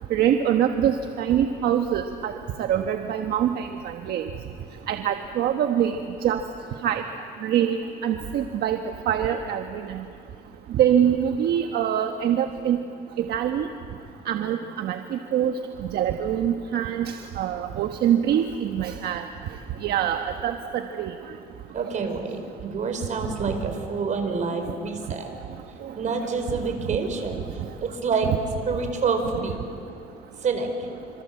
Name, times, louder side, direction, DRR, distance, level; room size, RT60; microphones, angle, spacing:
voice 1, 0.1-2.3 2.7-3.7 4.1-4.2 4.9-6.0 6.2-6.4 6.8-7.0 7.4-7.8 8.0-8.8 9.1-9.6 9.9-10.0 10.8-12.8 13.2-13.7 14.3-15.5 15.9-19.2 19.8-21.1, right 10 dB, 70° right, 6 dB, 1.3 m, -24 dB
voice 2, 21.7-25.3 25.9-27.4 27.8-28.3 28.7-29.5 30.4-30.7, right 4 dB, 45° right, 6 dB, 4.7 m, -27 dB
27.0 x 26.5 x 7.7 m, 2.6 s
cardioid pair, 110°, 17 cm